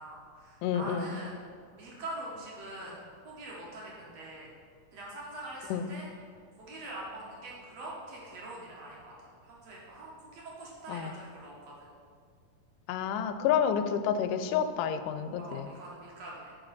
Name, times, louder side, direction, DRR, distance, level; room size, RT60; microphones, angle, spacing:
voice 1, 0.0-1.3 1.8-4.5 4.9-6.1 6.6-9.1 9.4-11.5 11.8-11.9 15.4-16.5, right 1 dB, 60° right, -4 dB, 2.3 m, -43 dB
voice 2, 0.6-1.2 5.7-5.9 10.9-11.1 12.9-15.7, left 8 dB, 90° left, 10 dB, 2.1 m, -29 dB
9.9 x 5.4 x 4.2 m, 2.1 s
omnidirectional pair, 3.7 m